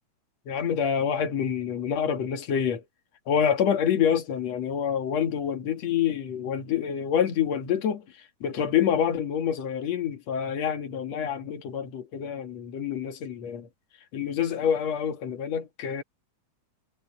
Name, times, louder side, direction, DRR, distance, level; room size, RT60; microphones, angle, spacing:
voice 1, 0.5-2.8 3.3-8.1 8.4-13.7 14.1-16.0, left 8 dB, 65° left, 3.0 m, -27 dB
omnidirectional pair, 3.3 m